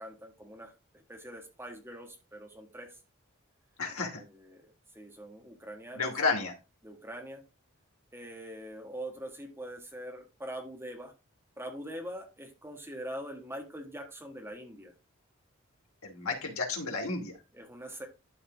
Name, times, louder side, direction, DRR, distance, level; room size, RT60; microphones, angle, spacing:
voice 1, 0.0-3.0 4.1-6.1 6.8-7.4 8.1-11.1 11.6-14.9 17.5-18.1, right 1 dB, 10° right, 2 dB, 1.8 m, -43 dB
voice 2, 3.8-4.2 5.9-6.5 16.0-17.4, left 4 dB, 90° left, 2 dB, 2.7 m, -32 dB
12.0 x 4.1 x 3.6 m, 0.28 s
head